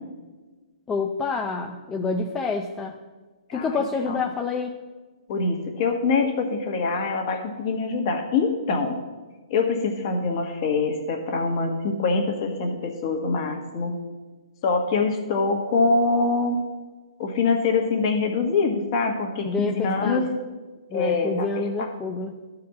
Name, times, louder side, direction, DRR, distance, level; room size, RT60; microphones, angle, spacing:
voice 1, 0.9-3.0 3.5-4.7 19.4-20.3 20.9-22.4, left 4 dB, 10° left, 2 dB, 0.5 m, -28 dB
voice 2, 5.3-9.0 9.5-13.9 14.6-16.6 17.2-20.3 20.9-21.9, left 4 dB, 40° left, 3 dB, 1.7 m, -24 dB
12.5 x 4.9 x 7.2 m, 1.3 s
hypercardioid pair, 160°, 4 cm